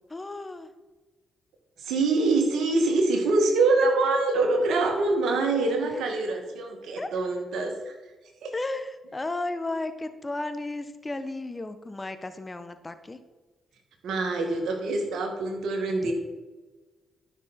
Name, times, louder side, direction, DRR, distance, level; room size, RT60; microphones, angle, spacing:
voice 1, 0.1-0.7 5.8-6.0 7.0-7.1 8.5-13.2, left 2 dB, 25° left, 10 dB, 1.2 m, -34 dB
voice 2, 1.8-7.9 8.4-8.5 14.0-16.1, right 3 dB, 70° right, 3 dB, 2.2 m, -25 dB
13.0 x 6.3 x 4.4 m, 1.2 s
hypercardioid pair, 45°, 0 cm